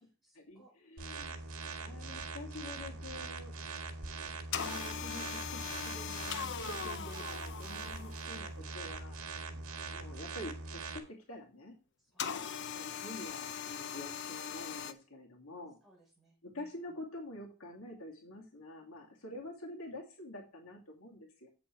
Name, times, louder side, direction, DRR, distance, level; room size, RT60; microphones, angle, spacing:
voice 1, 0.2-0.8 1.4-2.2 2.9-3.0 12.0-12.2 15.8-17.0, right 2 dB, ahead, -4 dB, 6.1 m, -67 dB
voice 2, 0.9-1.4 1.8-3.5 3.9-9.2 9.9-11.7 12.3-15.8 16.4-21.5, left 1 dB, 75° left, -1 dB, 2.5 m, -47 dB
sound 1, 1.0-11.0, right 3 dB, 85° right, 1.8 m, -42 dB
sound 2, 1.4-5.3 5.5-10.2, right 1 dB, 45° right, 1.8 m, -61 dB
sound 3, 4.5-8.5 12.2-14.9, left 7 dB, 55° left, 0.7 m, -40 dB
8.5 x 7.0 x 4.6 m, 0.34 s
head